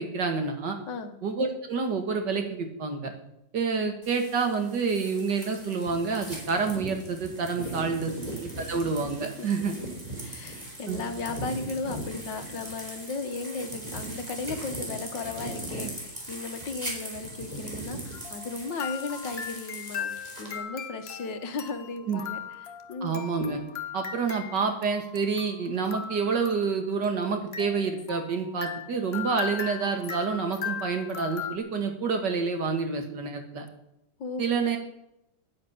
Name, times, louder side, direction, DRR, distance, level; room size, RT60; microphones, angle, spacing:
voice 1, 0.0-0.8 1.2-3.1 3.5-8.3 8.6-9.7 10.9-11.0 22.1-22.2 23.0-23.6 23.9-33.7 34.4-34.8, right 5 dB, 65° right, 5 dB, 2.5 m, -28 dB
voice 2, 0.9-1.2 7.6-7.7 9.2-9.5 9.8-9.9 10.2-20.1 20.4-22.4 22.9-23.3 34.2-34.4, left 3 dB, 75° left, 8 dB, 2.0 m, -35 dB
sound 1, 4.0-20.6, right 1 dB, 20° right, 3.8 m, -39 dB
sound 2, 18.1-31.6, left 7 dB, 40° left, 1.0 m, -38 dB
10.0 x 9.7 x 8.7 m, 0.81 s
omnidirectional pair, 2.0 m